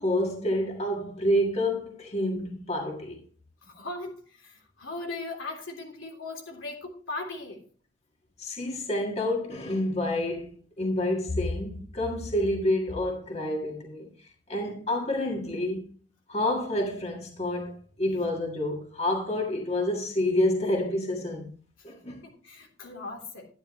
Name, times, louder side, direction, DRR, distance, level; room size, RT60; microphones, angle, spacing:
voice 1, 0.0-3.2 8.4-10.5 10.8-14.1 14.5-15.9 16.3-21.5 21.8-22.2, left 1 dB, 30° left, 1.7 m, -28 dB
voice 2, 3.6-7.6 22.1-23.5, left 3 dB, 85° left, 3.3 m, -38 dB
11.0 x 10.0 x 3.1 m
head